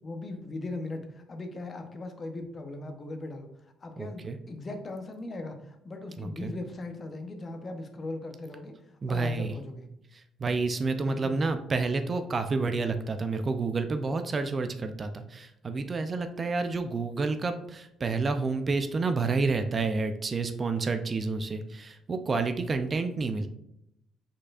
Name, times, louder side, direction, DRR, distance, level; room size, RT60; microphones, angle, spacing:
voice 1, 0.0-3.5 3.8-8.7 9.1-9.9 11.0-11.4, left 2 dB, 35° left, 6 dB, 0.8 m, -39 dB
voice 2, 4.0-4.4 6.2-6.5 9.0-9.5 10.1-23.5, right 3 dB, 35° right, 8 dB, 0.4 m, -29 dB
5.0 x 4.2 x 2.4 m, 0.78 s
cardioid pair, 85°, 0 cm